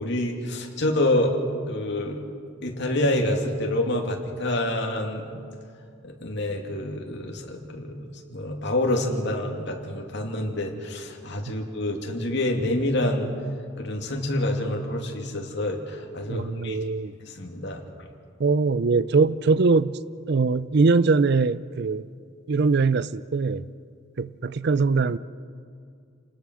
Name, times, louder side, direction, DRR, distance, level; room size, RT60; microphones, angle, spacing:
voice 1, 0.0-1.4 1.7-2.2 2.6-5.4 6.0-13.3 13.8-16.8 17.2-17.8, left 1 dB, 60° left, 2.7 m, -27 dB
voice 2, 16.3-17.1 18.4-20.0 20.3-22.1 22.5-23.7 24.2-25.2, right 4 dB, 55° right, 0.5 m, -22 dB
28.5 x 19.5 x 6.3 m
head